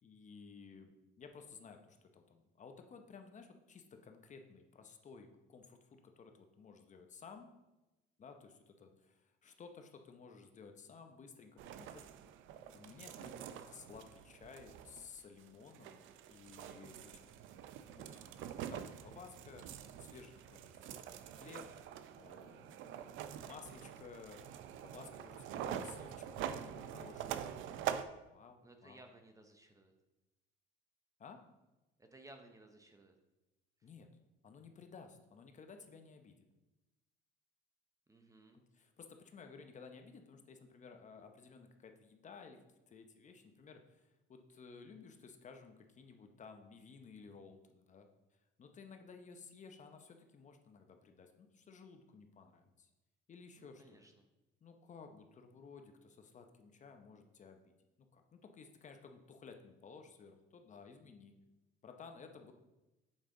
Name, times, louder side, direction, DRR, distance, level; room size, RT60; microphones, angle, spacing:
voice 1, 0.0-7.5 8.2-12.0 12.7-17.4 18.0-18.2 18.6-21.7 22.1-23.0 23.5-24.4 24.8-27.6 28.3-29.0 31.2-31.4 33.8-34.1 34.4-36.4 38.7-42.6 42.9-48.1 48.6-52.9 53.3-54.0 54.6-57.7 58.1-61.3 61.8-62.5, left 5 dB, 35° left, 5 dB, 0.8 m, -55 dB
sound 1, 11.6-28.0, right 9 dB, 70° right, 0.5 m, -45 dB
voice 2, 18.1-18.6 28.6-29.9 32.0-33.2 38.1-38.6 53.6-54.2, right 2 dB, 15° right, 5 dB, 0.7 m, -59 dB
7.2 x 5.2 x 3.8 m, 1.0 s
cardioid pair, 115°, 21 cm